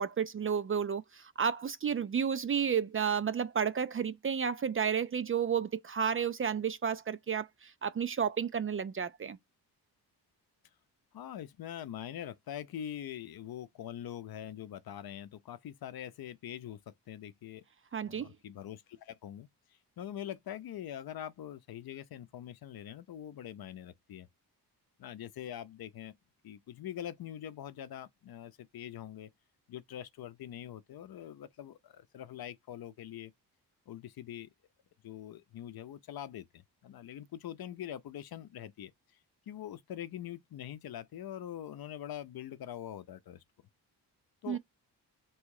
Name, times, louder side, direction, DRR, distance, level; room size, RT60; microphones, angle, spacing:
voice 1, 0.0-9.4 17.9-18.3 44.5-44.6, right 7 dB, 35° right, 0.4 m, -32 dB
voice 2, 11.1-17.6 18.1-19.5 20.0-24.3 25.0-26.1 26.4-29.3 29.7-33.3 33.9-34.5 35.0-38.9 39.5-43.4 44.4-44.6, left 10 dB, 60° left, 0.6 m, -43 dB
3.5 x 3.1 x 4.7 m
cardioid pair, 110°, 41 cm